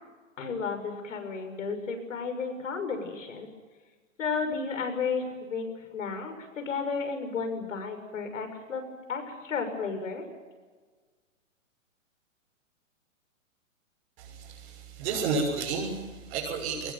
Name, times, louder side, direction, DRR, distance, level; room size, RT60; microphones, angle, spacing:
voice 1, 0.4-3.5 4.2-8.8 9.1-10.2, left 5 dB, 70° left, 7 dB, 6.7 m, -33 dB
voice 2, 14.2-16.9, right 4 dB, 45° right, -3 dB, 6.9 m, -31 dB
22.5 x 20.5 x 9.3 m, 1.4 s
hypercardioid pair, 125°, 40 cm